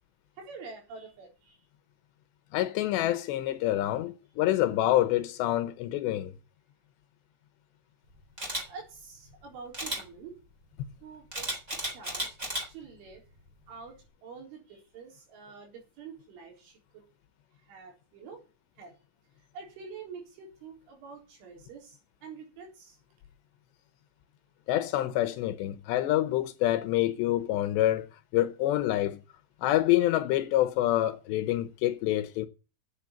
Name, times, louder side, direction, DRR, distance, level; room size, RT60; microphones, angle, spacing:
voice 1, 0.4-1.6 8.5-10.3 11.0-11.5 11.8-12.3 12.7-13.2 13.7-14.0 14.2-16.8 17.7-18.4 18.8-18.9 19.5-23.0, right 5 dB, 80° right, 6.6 m, -46 dB
voice 2, 2.5-6.3 24.7-28.1 28.3-29.2 29.6-32.5, left 14 dB, 75° left, 2.7 m, -27 dB
Camera, 8.4-8.6 9.7-10.0 11.3-12.6 13.1-13.4, equal, 15° right, 3.5 m, -33 dB
9.0 x 8.3 x 8.3 m
omnidirectional pair, 5.4 m